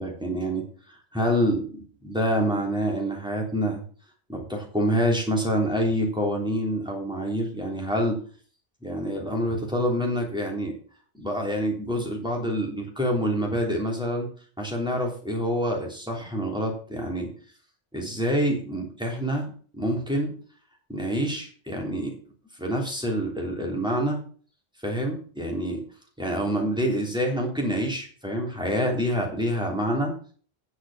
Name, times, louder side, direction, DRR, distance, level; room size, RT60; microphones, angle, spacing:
voice 1, 0.0-3.8 4.3-8.2 8.8-10.7 11.2-14.3 14.6-17.3 17.9-20.3 20.9-22.2 22.6-24.2 24.8-25.8 26.2-30.1, equal, 5° right, 0 dB, 3.4 m, -27 dB
9.9 x 6.4 x 7.2 m, 0.42 s
omnidirectional pair, 1.1 m